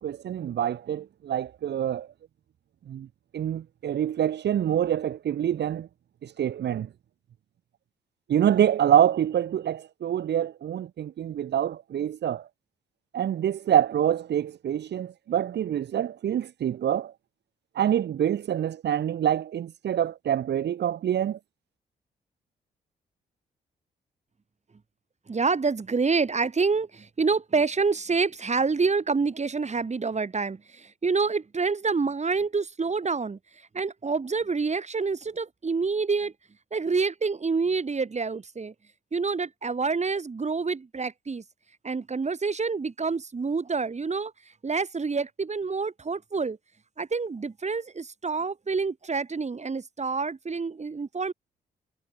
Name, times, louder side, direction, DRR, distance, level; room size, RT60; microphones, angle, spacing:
voice 1, 0.0-2.1 2.9-3.1 3.3-5.9 6.2-6.9 8.3-12.5 13.1-17.1 17.7-21.4, right 10 dB, 70° right, 1.4 m, -26 dB
voice 2, 25.3-33.4 33.7-36.3 36.7-38.7 39.1-41.4 41.8-44.3 44.6-46.6 47.0-51.3, right 4 dB, 40° right, 7.0 m, -27 dB
cardioid pair, 65°, 18 cm